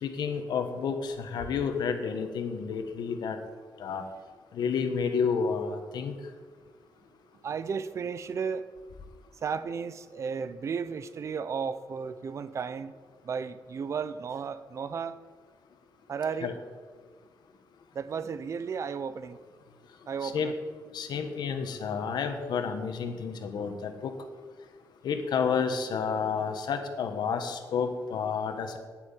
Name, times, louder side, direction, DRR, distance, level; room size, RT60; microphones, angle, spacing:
voice 1, 0.0-3.4 3.8-4.0 4.5-6.1 16.4-16.5 20.2-20.5 20.9-24.1 25.0-28.8, left 6 dB, 80° left, 7 dB, 1.5 m, -30 dB
voice 2, 7.4-8.7 9.3-13.0 13.2-15.2 16.1-16.6 17.9-19.4 20.1-20.5, right 6 dB, 45° right, 14 dB, 0.6 m, -34 dB
9.4 x 9.3 x 9.1 m, 1.5 s
wide cardioid pair, 175°, 7 cm